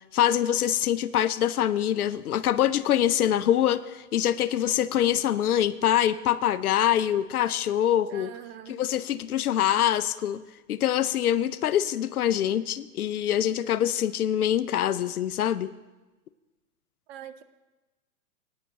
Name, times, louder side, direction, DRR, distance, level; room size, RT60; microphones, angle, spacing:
voice 1, 0.1-8.3 8.7-10.4 10.7-15.7, left 11 dB, 70° left, 14 dB, 0.7 m, -24 dB
voice 2, 8.1-8.8 17.1-17.4, right 10 dB, 40° right, 11 dB, 0.8 m, -43 dB
20.0 x 9.6 x 2.9 m, 1.2 s
hypercardioid pair, 130°, 45 cm